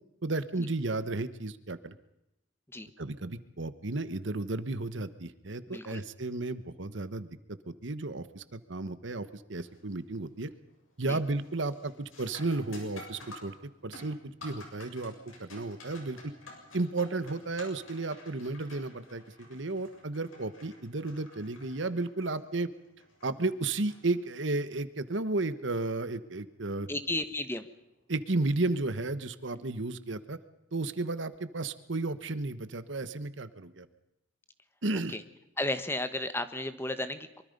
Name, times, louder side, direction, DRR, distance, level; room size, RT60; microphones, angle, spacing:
voice 1, 0.2-1.9 3.0-10.5 11.0-13.6 13.8-15.1 15.4-16.3 16.7-22.7 23.2-26.9 28.1-30.4 30.7-33.9 34.8-35.2, right 2 dB, 65° right, 13 dB, 1.2 m, -33 dB
voice 2, 5.7-6.0 11.1-11.2 26.9-27.7 29.6-29.7 35.1-35.2 35.6-37.4, left 2 dB, 10° left, 11 dB, 1.2 m, -33 dB
sound 1, 9.6-10.0 10.4-10.8 11.1-24.7 27.2-27.3 28.1-28.3, left 2 dB, 85° left, 7.1 m, -51 dB
24.0 x 24.0 x 5.4 m, 0.88 s
head